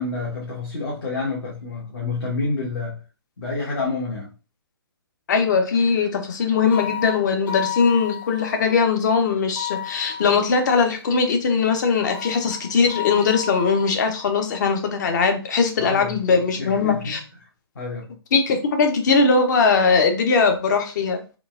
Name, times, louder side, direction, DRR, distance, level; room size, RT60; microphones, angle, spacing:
voice 1, 0.0-3.0 3.4-4.3 15.8-17.2 17.7-18.2, left 3 dB, 65° left, -5 dB, 1.1 m, -28 dB
voice 2, 5.3-17.2 18.3-21.2, left 5 dB, 45° left, 5 dB, 0.7 m, -20 dB
sound 1, 6.7-8.8 9.5-10.8 12.1-14.3, left 9 dB, 10° left, 0.6 m, -32 dB
3.8 x 2.3 x 2.3 m, 0.34 s
figure-of-eight pair, 135°, 14 cm